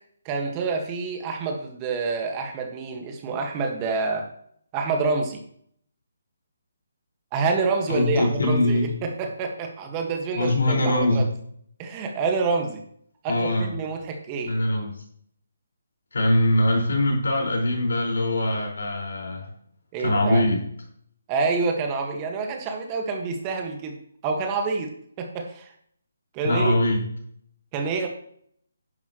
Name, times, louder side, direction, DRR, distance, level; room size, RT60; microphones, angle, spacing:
voice 1, 0.2-4.3 4.7-5.4 7.3-11.2 11.8-12.8 13.2-14.5 19.9-20.4 21.3-24.0 24.2-24.9 25.2-25.7 26.3-26.8 27.7-28.1, right 4 dB, 20° right, 3 dB, 1.6 m, -27 dB
voice 2, 7.9-9.0 10.3-11.3 13.3-13.7 14.5-15.0 16.1-19.5 20.0-20.6 26.4-27.0, left 1 dB, 80° left, 0 dB, 5.0 m, -22 dB
11.0 x 11.0 x 3.1 m, 0.64 s
hypercardioid pair, 160°, 0 cm